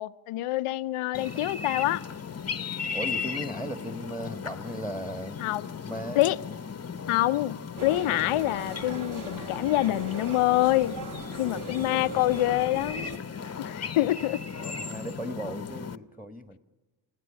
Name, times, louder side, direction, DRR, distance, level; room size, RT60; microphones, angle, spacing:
voice 1, 0.0-2.0 5.4-5.7 6.2-6.4 7.1-11.0 11.4-13.2 13.6-14.4, left 16 dB, 85° left, 0.7 m, -26 dB
sound 1, 1.1-16.0, left 6 dB, 30° left, 0.9 m, -37 dB
voice 2, 2.9-5.4 5.8-6.2 11.7-12.3 14.5-16.6, right 1 dB, 5° right, 1.5 m, -37 dB
sound 2, 7.8-13.2, right 2 dB, 40° right, 2.3 m, -40 dB
25.5 x 16.0 x 9.9 m
supercardioid pair, 55°, 50 cm